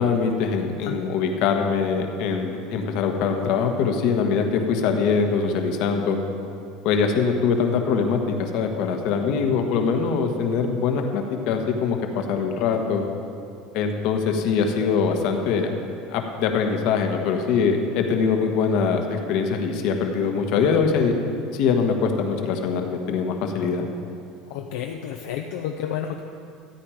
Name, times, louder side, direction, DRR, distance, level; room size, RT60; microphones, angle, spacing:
voice 1, 0.0-6.2 6.8-13.1 13.7-15.7 16.1-21.2 21.5-23.9, left 5 dB, 65° left, 4 dB, 1.3 m, -23 dB
voice 2, 24.5-26.2, left 9 dB, 80° left, 3 dB, 0.6 m, -30 dB
13.5 x 8.7 x 5.0 m, 2.5 s
supercardioid pair, 135°, 0 cm